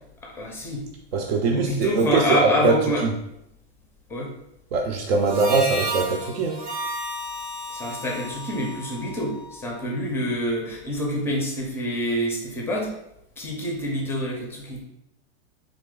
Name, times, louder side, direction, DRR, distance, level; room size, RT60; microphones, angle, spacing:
voice 1, 0.2-0.9 1.5-3.0 4.1-4.3 7.7-12.9 13.4-14.8, equal, 5° left, 0 dB, 0.5 m, -27 dB
voice 2, 1.1-3.1 4.7-6.7, right 4 dB, 65° right, 0 dB, 0.7 m, -22 dB
Harmonica, 5.2-9.8, equal, 30° right, 0.8 m, -33 dB
4.2 x 3.4 x 3.7 m, 0.83 s
supercardioid pair, 160°, 33 cm